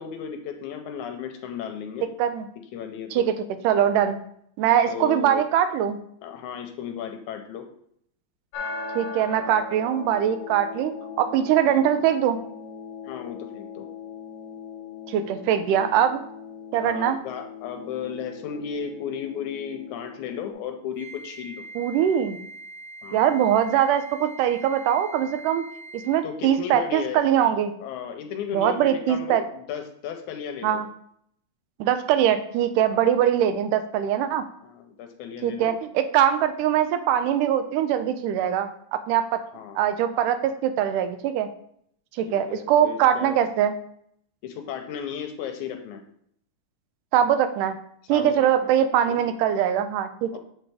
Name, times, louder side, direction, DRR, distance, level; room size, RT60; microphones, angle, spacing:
voice 1, 0.0-2.1 2.7-3.2 4.9-5.4 6.2-7.7 13.0-13.9 16.8-21.7 23.0-23.2 26.2-27.2 27.8-30.8 32.9-33.1 34.6-35.8 39.5-39.8 42.3-43.4 44.4-46.0 48.1-48.7 49.1-49.2 50.3-50.4, left 8 dB, 80° left, 5 dB, 1.9 m, -35 dB
voice 2, 3.6-4.2 4.6-6.0 9.0-12.4 15.1-16.2 16.7-17.2 21.8-22.4 23.1-25.7 25.9-27.7 28.5-29.4 30.6-30.9 31.8-34.4 35.4-38.7 39.1-39.4 39.8-41.5 42.2-43.7 47.1-47.8 48.1-50.4, right 10 dB, 85° right, 10 dB, 2.2 m, -22 dB
sound 1, 8.5-20.5, left 4 dB, 60° left, 1.7 m, -39 dB
Wind instrument woodwind instrument, 20.9-26.3, right 2 dB, 20° right, 0.5 m, -43 dB
7.6 x 4.2 x 3.4 m, 0.68 s
omnidirectional pair, 3.6 m